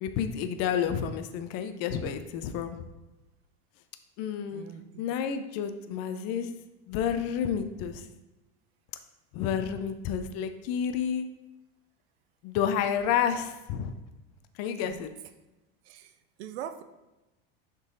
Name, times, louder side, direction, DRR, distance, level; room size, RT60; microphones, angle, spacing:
voice 1, 0.0-2.8 4.2-4.6 5.0-6.5 6.9-8.0 9.3-11.3 12.4-14.0 14.6-15.1, left 8 dB, 50° left, 9 dB, 0.5 m, -30 dB
voice 2, 4.5-5.1 14.8-15.0 15.8-16.8, right 9 dB, 90° right, 10 dB, 0.6 m, -42 dB
6.1 x 4.0 x 3.8 m, 1.0 s
supercardioid pair, 130°, 31 cm